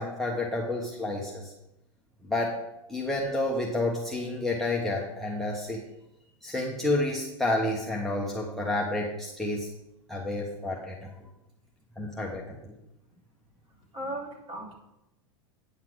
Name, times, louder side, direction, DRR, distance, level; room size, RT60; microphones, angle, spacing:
voice 1, 0.0-1.5 2.3-2.6 2.9-5.8 6.4-9.7 10.1-10.9 12.0-12.7, left 2 dB, ahead, -3 dB, 1.1 m, -30 dB
voice 2, 13.9-14.7, right 1 dB, 35° right, -1 dB, 2.8 m, -37 dB
9.4 x 5.7 x 6.2 m, 0.91 s
supercardioid pair, 135°, 16 cm